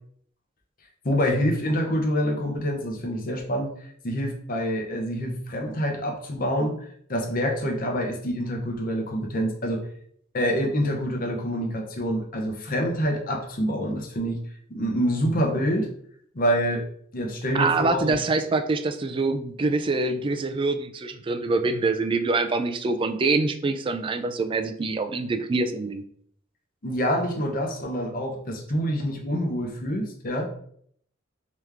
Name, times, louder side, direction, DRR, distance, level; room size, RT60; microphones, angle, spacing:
voice 1, 1.0-3.7 4.0-6.8 7.1-9.9 10.3-14.4 14.7-15.9 16.3-16.8 17.1-18.2 26.8-30.5, equal, 45° left, 1 dB, 0.8 m, -26 dB
voice 2, 17.5-26.0, right 3 dB, 25° right, 9 dB, 0.3 m, -25 dB
3.3 x 3.0 x 3.5 m, 0.64 s
head